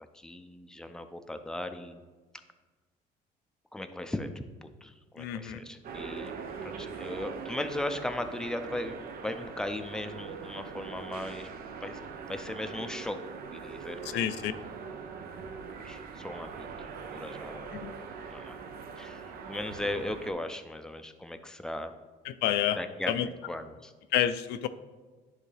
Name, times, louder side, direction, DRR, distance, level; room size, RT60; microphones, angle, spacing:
voice 1, 0.1-2.0 3.7-6.3 6.6-11.5 11.8-12.0 12.3-13.2 13.5-14.3 15.7-17.7 18.3-18.6 19.0-21.9 22.7-23.9, left 1 dB, 5° left, 7 dB, 0.5 m, -37 dB
voice 2, 5.2-5.6 14.1-14.5 17.7-17.9 22.3-22.8 23.1-23.3 24.1-24.7, left 11 dB, 85° left, 13 dB, 0.4 m, -29 dB
sound 1, 5.8-20.3, right 5 dB, 60° right, 0.7 m, -42 dB
11.0 x 3.6 x 3.3 m, 1.3 s
cardioid pair, 110°, 17 cm